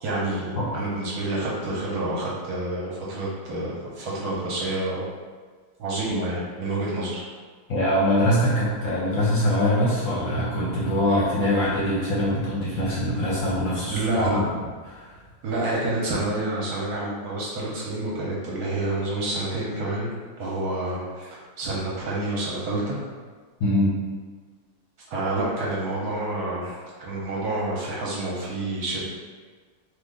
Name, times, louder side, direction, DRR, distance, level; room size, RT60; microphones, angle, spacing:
voice 1, 0.0-5.0 5.8-7.2 13.9-14.4 15.4-20.1 20.4-23.0 25.1-29.0, right 2 dB, 65° right, -5 dB, 1.0 m, -28 dB
voice 2, 7.7-14.5 14.9-15.2 23.6-23.9, equal, 60° left, -7 dB, 0.8 m, -23 dB
3.1 x 2.3 x 3.6 m, 1.5 s
omnidirectional pair, 2.0 m